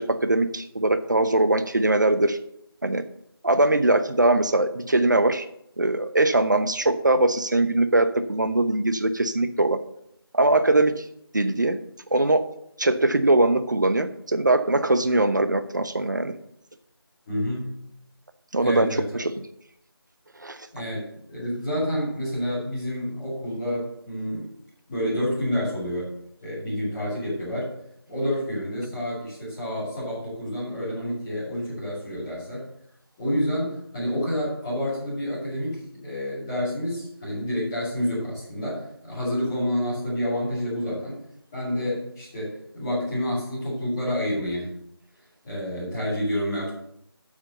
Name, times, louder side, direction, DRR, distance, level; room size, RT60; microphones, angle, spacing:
voice 1, 0.0-2.4 2.8-3.0 3.4-5.5 5.8-9.8 10.3-11.0 11.3-11.8 12.1-12.5 12.8-16.3 18.5-19.3 20.4-20.7, right 2 dB, 50° right, 10 dB, 0.9 m, -21 dB
voice 2, 17.3-17.8 18.6-19.2 20.7-24.4 24.9-26.1 26.4-27.7 28.1-32.6 33.2-41.2 41.5-44.7 45.4-46.7, equal, 10° left, -14 dB, 2.8 m, -29 dB
8.3 x 6.2 x 6.8 m, 0.73 s
figure-of-eight pair, 175°, 13 cm